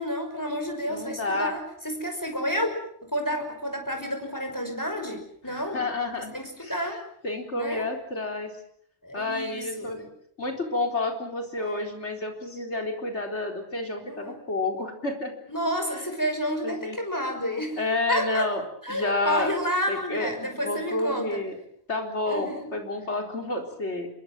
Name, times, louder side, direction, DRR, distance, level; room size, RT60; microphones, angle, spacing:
voice 1, 0.0-2.7 3.0-5.8 6.2-7.0 7.5-7.9 9.0-10.1 11.6-12.0 14.0-14.4 15.5-17.8 18.1-18.5 18.8-21.4 22.3-22.7, equal, 15° left, 4 dB, 5.9 m, -30 dB
voice 2, 0.9-1.5 5.4-6.3 6.6-6.9 7.2-8.5 9.1-10.0 10.4-15.3 16.6-17.0 17.8-19.5 19.9-21.6 21.9-24.1, left 2 dB, 70° left, 4 dB, 4.5 m, -30 dB
26.0 x 22.5 x 7.7 m, 0.67 s
omnidirectional pair, 1.2 m